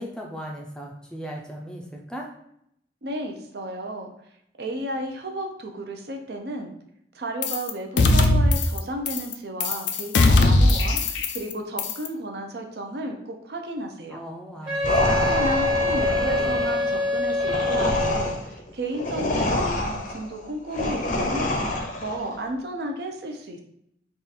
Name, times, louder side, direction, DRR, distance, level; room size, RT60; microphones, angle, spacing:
voice 1, 0.0-2.3 14.1-15.1, equal, 5° left, -1 dB, 0.5 m, -37 dB
voice 2, 3.0-4.1 4.6-6.7 7.1-14.2 14.7-23.6, right 1 dB, 60° right, 3 dB, 0.6 m, -33 dB
sound 1, 7.4-7.7 8.0-8.8 9.1-9.3 9.6-11.5 11.8-12.1, left 2 dB, 90° left, 0.5 m, -19 dB
Wind instrument woodwind instrument, 14.7-18.4, left 2 dB, 30° right, 1.1 m, -25 dB
sound 2, 14.8-22.2, left 1 dB, 45° left, 0.6 m, -27 dB
3.7 x 2.4 x 4.1 m, 0.75 s
head